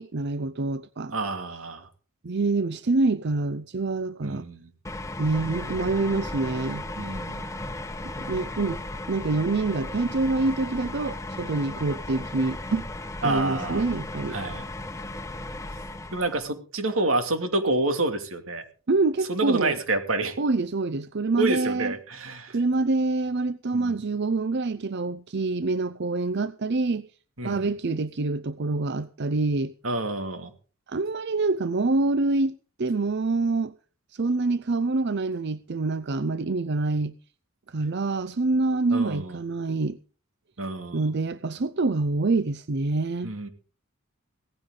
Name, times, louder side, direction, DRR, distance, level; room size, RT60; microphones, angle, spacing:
voice 1, 0.0-1.1 2.2-4.4 5.2-6.8 8.0-8.8 9.1-12.9 13.2-14.4 18.9-19.8 20.4-21.9 22.5-27.1 27.4-29.7 30.9-32.5 32.8-33.7 34.1-37.1 37.7-40.0 40.9-43.3, right 3 dB, 55° right, 0.6 m, -26 dB
voice 2, 1.1-1.9 4.2-4.7 7.0-7.5 13.2-13.8 14.3-14.6 16.1-18.6 19.3-20.4 21.4-22.6 23.7-24.0 27.4-27.7 29.8-30.5 38.9-39.4 40.6-41.1 43.2-43.5, right 2 dB, 90° right, 2.6 m, -28 dB
sound 1, 4.8-16.4, left 2 dB, 15° left, 1.2 m, -36 dB
17.5 x 15.0 x 3.9 m
head